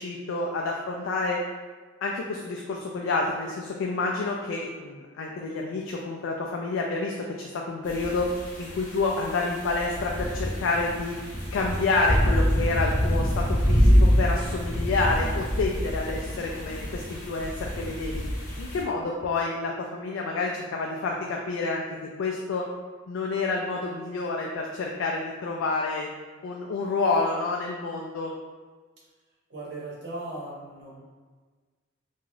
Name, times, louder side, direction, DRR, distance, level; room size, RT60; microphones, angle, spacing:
voice 1, 0.0-1.4 2.0-8.3 8.6-11.2 11.5-18.2 18.6-21.8 22.2-22.7 23.1-26.1 26.4-28.3, left 3 dB, 75° left, -1 dB, 0.3 m, -28 dB
sound 1, 7.9-18.8, equal, 40° left, 0.8 m, -26 dB
voice 2, 29.5-31.0, right 2 dB, 60° right, -6 dB, 0.9 m, -38 dB
2.5 x 2.3 x 3.1 m, 1.5 s
head